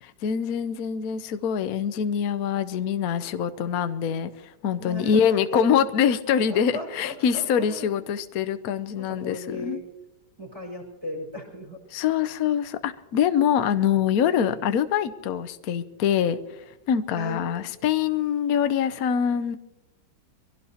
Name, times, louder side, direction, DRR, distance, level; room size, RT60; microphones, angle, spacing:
voice 1, 0.0-9.8 11.9-16.4 16.7-19.6, left 8 dB, 60° left, 10 dB, 1.1 m, -24 dB
voice 2, 4.8-5.7 6.5-7.9 9.0-9.8 10.4-11.8 14.2-14.7 17.1-17.4, left 1 dB, 15° right, -3 dB, 4.9 m, -36 dB
24.0 x 16.5 x 2.9 m, 0.99 s
omnidirectional pair, 2.0 m